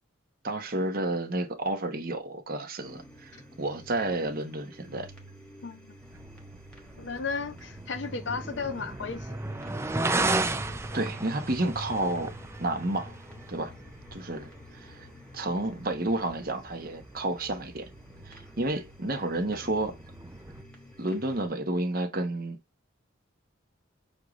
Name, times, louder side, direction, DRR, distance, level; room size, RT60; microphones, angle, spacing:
voice 1, 0.4-5.1 10.9-12.3 12.6-13.2 13.5-13.7 14.1-15.1 15.3-17.9 18.2-20.0 21.0-22.6, right 2 dB, 45° right, 1.0 m, -31 dB
sound 1, 2.8-21.5, equal, 5° left, 1.3 m, -46 dB
sound 2, 6.0-20.6, right 2 dB, 15° right, 0.3 m, -36 dB
voice 2, 7.0-9.3, left 5 dB, 60° left, 0.7 m, -34 dB
6.6 x 2.5 x 3.1 m
head